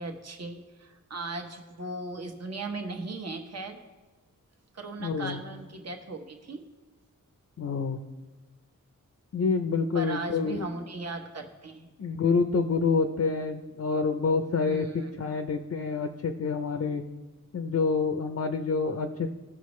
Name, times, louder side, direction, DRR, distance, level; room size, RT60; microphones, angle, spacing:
voice 1, 0.0-3.8 4.7-6.6 9.9-11.9 14.7-15.3, right 2 dB, 50° right, 4 dB, 1.1 m, -37 dB
voice 2, 5.0-5.4 7.6-8.0 9.3-10.7 12.0-14.9 15.2-17.0 17.5-19.3, left 4 dB, 50° left, 6 dB, 0.6 m, -27 dB
18.0 x 6.1 x 3.1 m, 1.2 s
wide cardioid pair, 130°, 33 cm